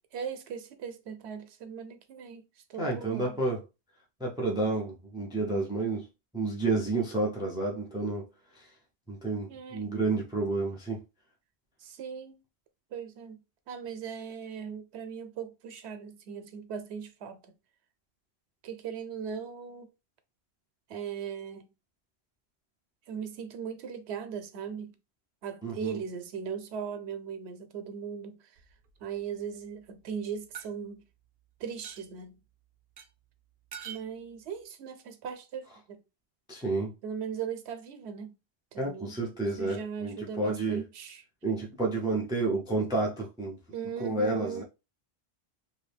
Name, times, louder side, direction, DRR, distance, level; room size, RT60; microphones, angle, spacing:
voice 1, 0.1-2.4 2.7-3.4 9.5-9.8 11.8-12.4 12.9-17.4 18.6-19.9 20.9-21.7 23.1-24.9 25.4-28.4 29.0-31.0 31.6-32.4 33.8-36.0 37.0-38.3 38.7-39.2 39.6-41.2 43.7-44.6, right 7 dB, 85° right, 0.9 m, -38 dB
voice 2, 2.8-3.6 4.2-6.1 6.3-8.3 8.5-8.7 9.1-11.0 25.6-26.0 36.5-36.9 38.8-40.8 41.4-43.6 44.0-44.6, right 3 dB, 5° right, 0.5 m, -30 dB
sound 1, 28.6-29.2 30.5-30.7 31.8-32.1 33.0-33.1 33.7-34.1, right 9 dB, 60° right, 0.6 m, -44 dB
2.7 x 2.7 x 3.4 m
omnidirectional pair, 1.1 m